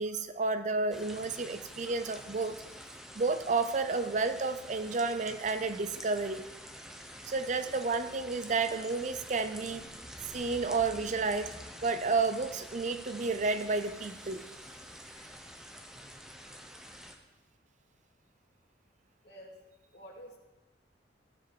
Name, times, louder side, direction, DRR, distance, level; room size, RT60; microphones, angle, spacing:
voice 1, 0.0-2.6 3.2-6.4 7.2-9.9 10.3-11.5 11.8-14.4, right 3 dB, 40° right, 11 dB, 0.6 m, -31 dB
sound 1, 0.9-17.2, equal, 5° right, 0.9 m, -48 dB
voice 2, 19.2-19.6 19.9-20.4, equal, 65° left, -1 dB, 2.3 m, -50 dB
15.0 x 7.1 x 4.8 m, 1.1 s
head